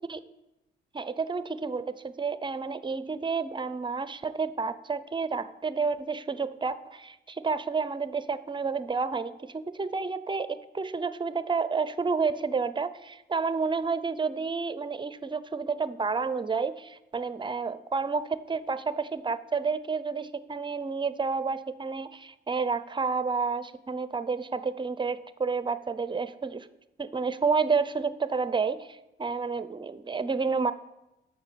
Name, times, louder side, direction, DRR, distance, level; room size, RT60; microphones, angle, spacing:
voice 1, 0.9-26.7 27.0-30.7, right 4 dB, 25° right, 14 dB, 0.7 m, -30 dB
11.0 x 6.8 x 6.9 m, 0.96 s
cardioid pair, 90°, 20 cm